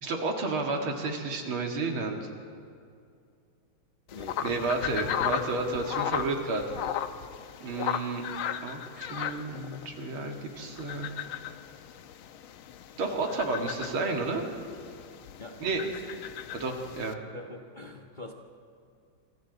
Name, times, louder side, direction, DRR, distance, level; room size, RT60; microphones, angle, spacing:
voice 1, 0.0-2.3 4.4-6.6 7.6-8.2 8.6-11.1 13.0-14.4 15.6-15.8 16.6-17.2, right 3 dB, 80° right, 2 dB, 3.0 m, -31 dB
sound 1, 4.1-17.1, left 10 dB, 90° left, 1.7 m, -36 dB
voice 2, 4.1-4.6 15.4-16.0 17.3-18.3, left 2 dB, 25° left, 1 dB, 1.3 m, -44 dB
27.0 x 26.5 x 4.1 m, 2.3 s
omnidirectional pair, 2.3 m